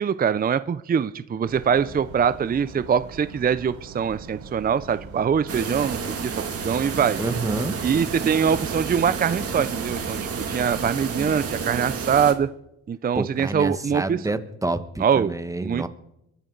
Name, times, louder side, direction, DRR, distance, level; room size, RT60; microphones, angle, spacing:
voice 1, 0.0-6.4 6.6-7.2 7.8-10.2 10.5-12.5 12.9-14.2 15.0-15.3 15.6-15.9, right 7 dB, 30° right, 14 dB, 0.6 m, -23 dB
sound 1, 1.4-11.7, right 4 dB, 75° right, 4.8 m, -42 dB
sound 2, 5.5-12.3, right 5 dB, 50° right, 2.5 m, -30 dB
voice 2, 7.2-7.7 13.1-15.9, right 2 dB, 10° right, 10 dB, 1.3 m, -28 dB
23.0 x 12.5 x 4.0 m, 0.83 s
cardioid pair, 90°, 30 cm